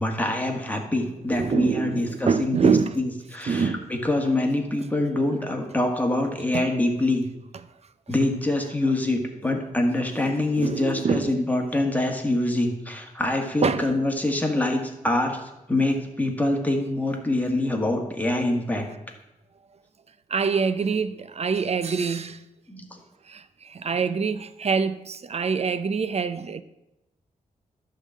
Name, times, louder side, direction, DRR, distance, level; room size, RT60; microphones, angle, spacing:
voice 1, 0.0-7.2 8.1-15.4 15.7-18.9 22.7-22.9, left 2 dB, 10° left, 1.8 m, -25 dB
voice 2, 1.3-3.0 3.5-3.9 6.5-6.6 10.2-11.3 13.6-13.9 20.3-22.4 23.3-26.6, right 5 dB, 45° right, 0.6 m, -25 dB
11.5 x 3.9 x 7.5 m
cardioid pair, 75°, 14 cm